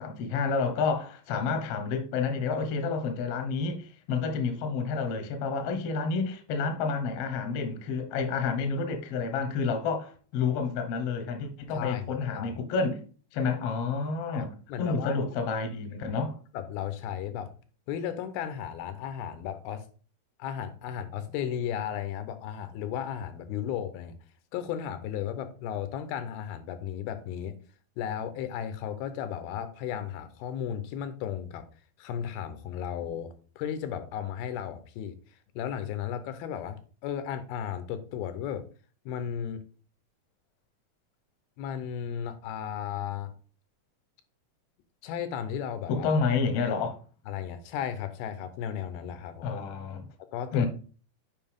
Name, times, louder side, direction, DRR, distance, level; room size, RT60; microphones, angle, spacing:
voice 1, 0.0-13.0 13.3-14.5 14.8-16.4 45.9-47.0 49.4-50.1 50.5-50.7, left 5 dB, 70° left, 1.5 m, -29 dB
voice 2, 11.7-12.6 14.2-15.2 16.5-17.5 17.9-19.9 20.4-24.2 24.5-27.6 28.0-31.7 32.0-35.2 35.6-38.6 39.1-39.6 41.6-43.3 45.0-46.1 47.3-49.5 50.3-50.7, left 9 dB, 90° left, 2.7 m, -35 dB
7.6 x 5.0 x 3.5 m
omnidirectional pair, 4.3 m